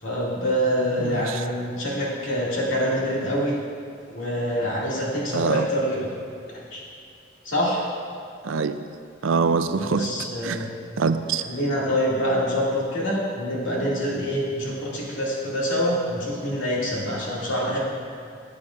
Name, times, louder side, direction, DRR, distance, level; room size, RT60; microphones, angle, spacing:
voice 1, 0.0-3.5 4.1-6.1 6.5-6.8 7.4-7.8 9.8-10.7 11.5-17.8, equal, 80° left, -5 dB, 2.4 m, -25 dB
voice 2, 1.0-1.4 5.3-5.7 8.4-8.9 9.2-10.0 10.4-10.6 11.0-11.4, right 5 dB, 85° right, 10 dB, 0.5 m, -24 dB
14.0 x 8.5 x 2.5 m, 2.4 s
head